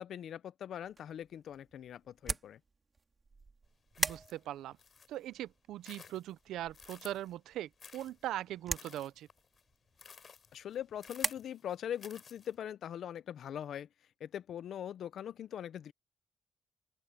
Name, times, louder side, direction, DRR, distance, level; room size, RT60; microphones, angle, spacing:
voice 1, 0.0-2.6 10.5-13.9 14.2-15.9, left 10 dB, 65° left, 0.7 m, -41 dB
sound 1, 0.7-11.3, right 4 dB, 30° right, 2.4 m, -42 dB
sound 2, 3.9-5.3 5.7-7.3 7.8-12.6, left 6 dB, 45° left, 3.7 m, -56 dB
voice 2, 4.0-4.8 5.1-9.3, right 13 dB, 85° right, 0.6 m, -40 dB
open air
cardioid pair, 90°, 0 cm